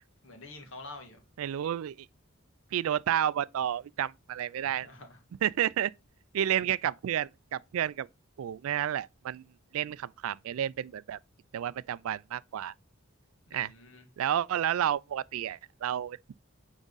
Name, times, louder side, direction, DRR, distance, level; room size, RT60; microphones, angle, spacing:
voice 1, 0.2-1.2 4.6-5.2 13.5-14.1, left 2 dB, 65° left, 1.8 m, -47 dB
voice 2, 1.4-2.0 2.7-4.9 5.4-5.9 6.3-8.1 8.4-9.4 9.7-11.2 11.5-12.7 13.5-13.7 14.2-16.3, right 10 dB, 80° right, 0.3 m, -31 dB
9.0 x 3.6 x 3.9 m
head